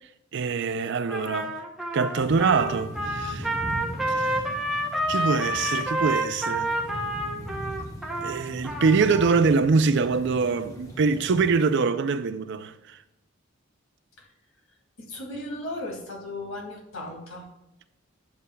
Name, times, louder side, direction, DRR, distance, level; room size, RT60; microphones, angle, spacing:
voice 1, 0.3-1.6 1.9-3.5 4.1-4.4 5.1-6.7 8.2-13.0, right 4 dB, 60° right, 0.5 m, -24 dB
Trumpet, 1.1-9.4, right 1 dB, ahead, 0.8 m, -29 dB
sound 1, 2.2-11.6, equal, 20° left, 1.2 m, -39 dB
voice 2, 15.0-17.5, left 1 dB, 80° left, 2.2 m, -36 dB
9.6 x 7.5 x 2.3 m
head